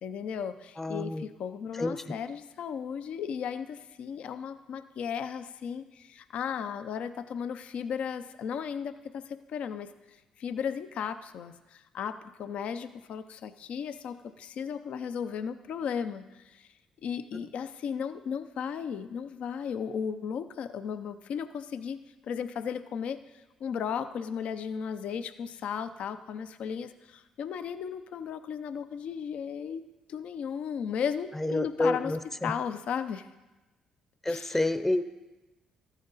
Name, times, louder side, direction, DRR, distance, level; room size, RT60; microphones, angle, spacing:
voice 1, 0.0-9.9 10.4-16.7 17.0-23.2 23.6-29.8 30.1-32.1 32.4-33.3 34.3-34.6, left 7 dB, 65° left, 11 dB, 0.6 m, -35 dB
voice 2, 0.8-1.3 1.8-2.1 31.3-32.5 34.2-35.0, left 2 dB, 15° left, 11 dB, 0.7 m, -29 dB
13.5 x 9.1 x 4.1 m, 1.1 s
supercardioid pair, 60°, 2 cm